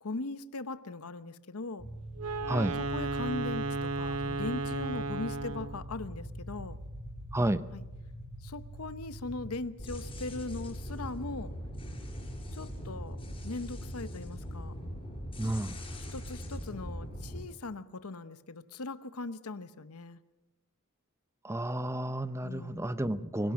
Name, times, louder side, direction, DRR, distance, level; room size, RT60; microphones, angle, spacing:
voice 1, 0.0-1.9 2.7-6.8 7.7-7.8 8.4-11.5 12.5-13.2 13.4-14.7 16.1-20.2 22.4-22.9, left 3 dB, 75° left, 13 dB, 0.9 m, -39 dB
sound 1, 1.8-9.5, right 1 dB, 55° right, 7.9 m, -43 dB
Wind instrument woodwind instrument, 2.2-5.9, right 3 dB, 80° right, 1.0 m, -34 dB
sound 2, 9.8-17.4, equal, 25° left, 5.8 m, -40 dB
voice 2, 15.4-15.7 21.4-23.5, right 1 dB, 15° right, 13 dB, 0.7 m, -31 dB
24.5 x 17.5 x 6.3 m, 1.0 s
head